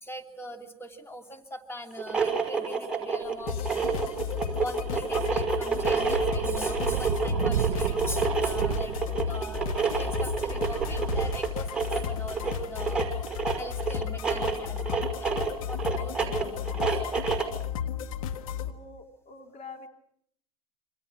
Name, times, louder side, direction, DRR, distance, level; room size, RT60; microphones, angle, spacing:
voice 1, 0.0-4.1 4.6-13.2 13.6-15.3 15.6-17.0, equal, 15° left, 5 dB, 3.0 m, -41 dB
sound 1, 1.9-17.6, right 5 dB, 5° right, 5.5 m, -29 dB
sound 2, 3.3-3.5 5.4-12.4, right 11 dB, 75° right, 0.9 m, -34 dB
sound 3, 3.5-18.7, left 9 dB, 70° left, 1.8 m, -34 dB
voice 2, 17.9-19.9, left 4 dB, 40° left, 4 dB, 2.6 m, -47 dB
27.0 x 25.5 x 6.0 m, 0.70 s
hypercardioid pair, 90°, 19 cm